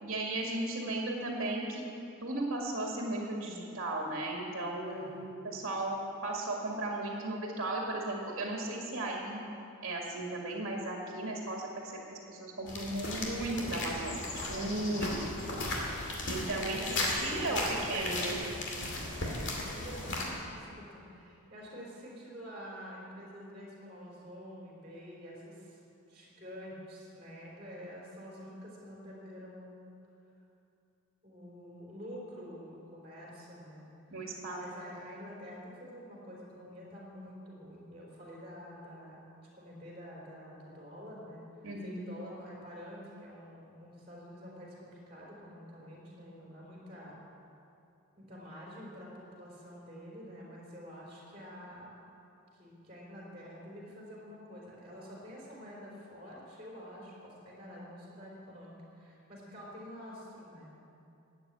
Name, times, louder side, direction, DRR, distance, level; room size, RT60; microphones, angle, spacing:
voice 1, 0.0-1.8 2.2-9.4 9.8-15.2 16.3-16.8 17.2-17.6 17.9-18.4 34.1-34.6 41.6-42.1, right 2 dB, 60° right, -1 dB, 2.0 m, -35 dB
voice 2, 4.9-5.3 14.5-15.2 16.4-19.0 19.7-25.8 26.1-30.0 31.2-34.0 34.5-41.4 41.8-47.1 48.2-52.0 52.5-60.8, equal, 25° right, -4 dB, 3.9 m, -48 dB
sound 1, 12.7-20.2, left 2 dB, 55° left, 2.3 m, -36 dB
12.5 x 9.0 x 8.5 m, 2.7 s
head